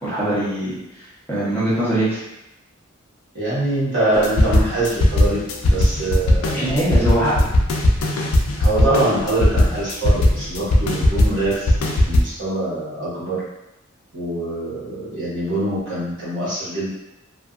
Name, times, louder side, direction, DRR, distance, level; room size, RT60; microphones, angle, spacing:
voice 1, 0.0-2.2 6.5-7.5, right 1 dB, 10° left, -11 dB, 0.8 m, -22 dB
voice 2, 3.3-6.6 8.6-13.4 14.1-16.9, right 2 dB, 55° right, -9 dB, 1.1 m, -24 dB
sound 1, 4.1-12.2, left 1 dB, 80° left, 0.4 m, -18 dB
2.5 x 2.3 x 2.4 m, 0.90 s
head